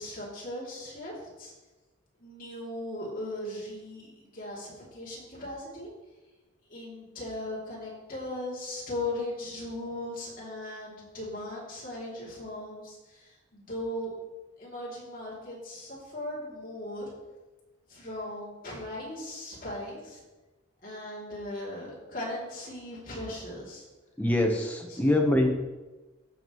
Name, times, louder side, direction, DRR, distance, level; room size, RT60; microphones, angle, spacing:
voice 1, 0.0-1.5 2.2-5.9 6.7-14.1 14.6-17.1 17.9-20.2 20.8-23.9 24.9-25.0, left 1 dB, 40° left, -5 dB, 2.9 m, -38 dB
voice 2, 24.2-25.5, left 1 dB, 10° left, 1 dB, 1.0 m, -24 dB
14.5 x 5.9 x 3.1 m, 1.1 s
head